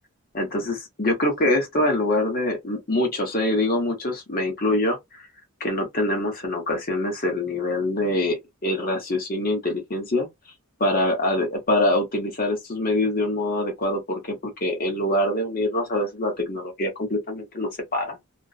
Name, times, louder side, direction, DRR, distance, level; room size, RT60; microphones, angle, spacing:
voice 1, 0.3-5.2 5.6-10.3 10.8-18.2, left 1 dB, 40° left, 1.0 m, -24 dB
2.4 x 2.2 x 2.4 m
head